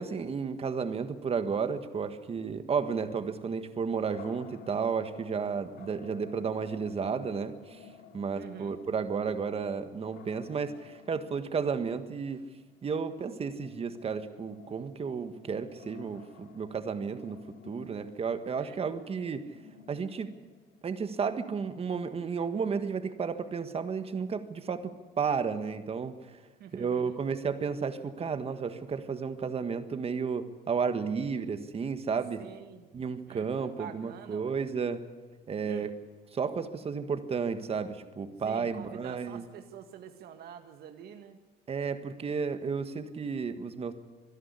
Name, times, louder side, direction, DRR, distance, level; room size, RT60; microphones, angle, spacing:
voice 1, 0.0-7.9 8.1-12.4 12.8-17.4 17.7-19.5 19.9-20.3 20.8-26.4 26.7-32.4 32.9-35.0 35.5-35.9 36.3-39.4 41.7-43.9, right 5 dB, 35° right, 9 dB, 1.6 m, -32 dB
sound 1, 4.0-21.7, left 7 dB, 75° left, 2.4 m, -54 dB
voice 2, 8.3-8.8 18.5-18.8 26.6-27.2 32.4-32.9 33.3-34.5 35.7-35.9 38.4-41.4, right 9 dB, 70° right, 7 dB, 1.7 m, -47 dB
25.0 x 11.0 x 9.8 m, 1.3 s
cardioid pair, 110°, 17 cm